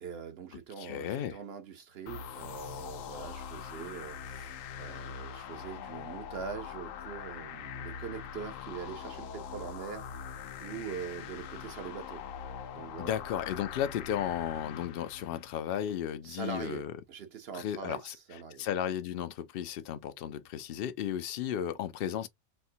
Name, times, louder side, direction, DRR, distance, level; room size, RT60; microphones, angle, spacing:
voice 1, 0.0-10.2 10.6-12.2 12.7-13.1 16.2-18.7, right 6 dB, 55° right, 0.9 m, -43 dB
voice 2, 0.8-1.4 13.0-16.9 17.5-18.2 18.6-22.3, left 10 dB, 60° left, 0.6 m, -34 dB
sound 1, 2.1-15.6, left 7 dB, 80° left, 1.0 m, -43 dB
4.3 x 2.1 x 2.6 m
omnidirectional pair, 1.3 m